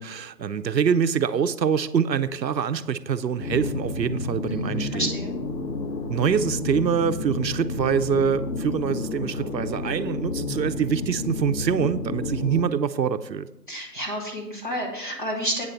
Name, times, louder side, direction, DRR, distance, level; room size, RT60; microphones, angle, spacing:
voice 1, 0.0-5.1 6.1-13.5, right 7 dB, 80° right, 0.7 m, -25 dB
sound 1, 3.4-12.6, left 3 dB, 85° left, 1.4 m, -30 dB
voice 2, 4.4-5.4 13.7-15.7, equal, 30° left, 1.7 m, -30 dB
8.8 x 6.7 x 5.5 m
figure-of-eight pair, 180°, 50 cm